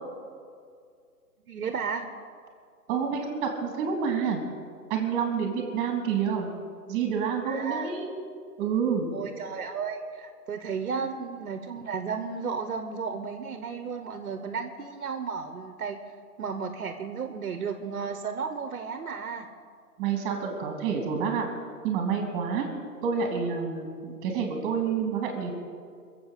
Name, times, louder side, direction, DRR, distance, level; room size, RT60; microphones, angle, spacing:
voice 1, 1.5-2.0 7.5-7.9 9.1-16.0 16.4-19.5, right 5 dB, 60° right, 8 dB, 1.3 m, -33 dB
voice 2, 2.9-4.4 4.9-6.5 6.9-8.1 8.6-9.1 20.0-21.4 21.8-22.7 23.0-25.5, right 6 dB, 20° right, 2 dB, 3.0 m, -28 dB
21.0 x 7.7 x 7.5 m, 2.2 s
hypercardioid pair, 150°, 48 cm